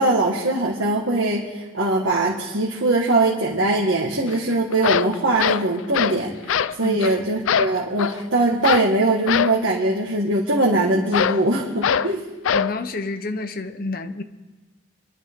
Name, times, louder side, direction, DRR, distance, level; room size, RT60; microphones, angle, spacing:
voice 1, 0.0-12.2, right 2 dB, 80° right, 1.9 m, -21 dB
sound 1, 4.3-4.4 4.7-6.2 6.5-6.8 7.0-7.2 7.5-8.2 8.6-8.9 9.3-9.6 11.1-11.4 11.8-12.1 12.5-12.7, left 8 dB, 85° left, 0.4 m, -22 dB
voice 2, 12.5-14.2, left 3 dB, 45° left, 0.8 m, -29 dB
26.0 x 12.0 x 3.7 m
head